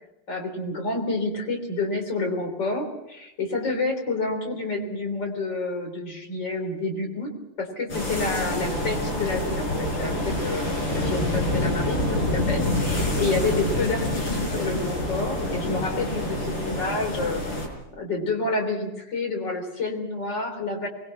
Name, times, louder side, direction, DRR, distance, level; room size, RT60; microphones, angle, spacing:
voice 1, 0.3-7.3 7.6-17.4 18.0-20.9, left 3 dB, 55° left, 3 dB, 4.3 m, -29 dB
sound 1, 7.9-17.7, left 1 dB, 70° left, 6.2 m, -27 dB
24.0 x 21.0 x 6.0 m, 0.89 s
omnidirectional pair, 2.4 m